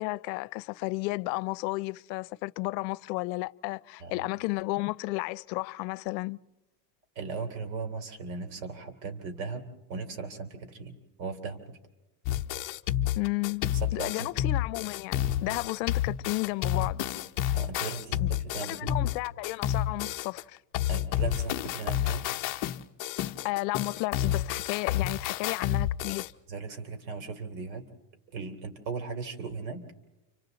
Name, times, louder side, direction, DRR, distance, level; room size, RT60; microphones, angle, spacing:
voice 1, 0.0-6.4 13.2-13.6 13.9-17.0 18.2-18.3 18.7-20.6 23.4-26.2, left 23 dB, 85° left, 0.7 m, -33 dB
voice 2, 7.1-11.8 13.8-14.3 17.5-19.0 20.9-22.3 26.5-27.8 28.3-29.8, right 4 dB, 75° right, 3.2 m, -37 dB
sound 1, 12.3-20.4 20.7-26.3, left 12 dB, 40° left, 0.7 m, -30 dB
30.0 x 26.5 x 4.0 m
cardioid pair, 155°, 50 cm